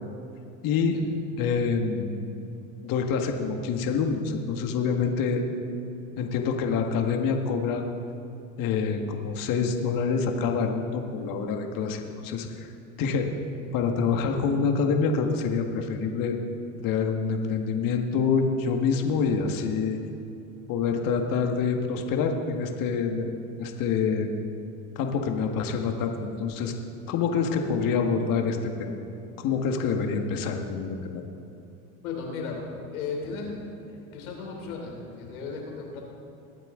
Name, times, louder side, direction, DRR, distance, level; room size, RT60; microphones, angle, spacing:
voice 1, 0.6-0.9 1.4-2.3 2.8-5.4 6.2-7.8 8.6-12.7 13.0-13.3 13.7-16.3 16.8-20.0 20.7-23.3 23.6-24.3 24.9-26.7 27.1-28.9 29.4-31.2, left 5 dB, 50° left, 4 dB, 1.7 m, -26 dB
voice 2, 32.0-32.6 32.9-33.5 33.9-36.0, left 5 dB, 85° left, 0 dB, 3.4 m, -35 dB
22.5 x 9.0 x 3.8 m, 2.8 s
hypercardioid pair, 100°, 42 cm